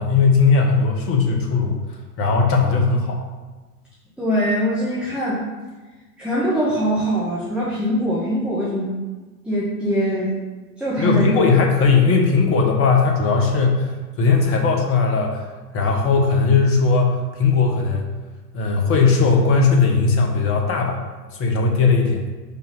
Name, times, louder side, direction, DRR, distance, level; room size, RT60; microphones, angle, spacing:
voice 1, 0.0-1.8 2.2-3.2 11.0-13.9 14.2-15.5 15.7-18.1 18.5-21.0 21.3-22.2, left 4 dB, 30° left, 1 dB, 1.5 m, -18 dB
voice 2, 4.2-5.4 6.2-8.9 9.4-10.3 10.8-11.3 21.6-21.8, equal, ahead, -8 dB, 1.7 m, -22 dB
5.8 x 5.3 x 5.6 m, 1.3 s
figure-of-eight pair, 100°, 48 cm